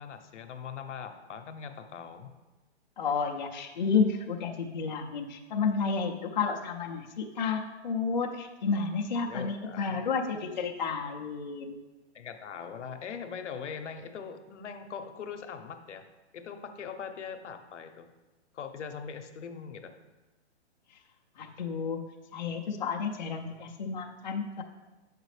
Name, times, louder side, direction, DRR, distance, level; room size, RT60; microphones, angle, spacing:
voice 1, 0.0-2.3 9.2-10.0 12.1-16.1 16.3-18.1 18.5-19.9, left 6 dB, 90° left, 7 dB, 0.8 m, -41 dB
voice 2, 3.0-11.8 21.4-24.6, left 5 dB, 40° left, 0 dB, 0.5 m, -31 dB
7.5 x 5.0 x 3.2 m, 1.2 s
hypercardioid pair, 175°, 35 cm